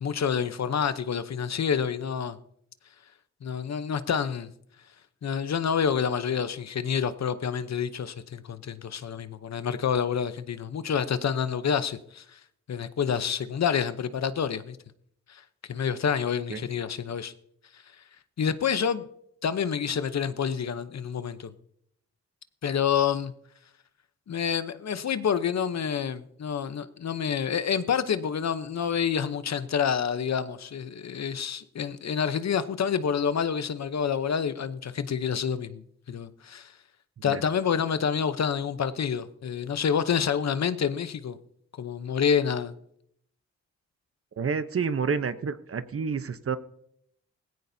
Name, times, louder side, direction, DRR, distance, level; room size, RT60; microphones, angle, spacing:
voice 1, 0.0-2.4 3.4-4.5 5.2-12.4 12.7-14.8 15.3-15.4 15.7-17.3 18.4-19.1 19.4-21.5 22.6-23.3 24.3-35.8 36.1-36.7 37.2-41.4 41.8-42.7, left 7 dB, 65° left, 0.8 m, -28 dB
voice 2, 44.4-46.6, right 5 dB, 50° right, 0.9 m, -29 dB
18.5 x 16.0 x 2.7 m
cardioid pair, 75°, 29 cm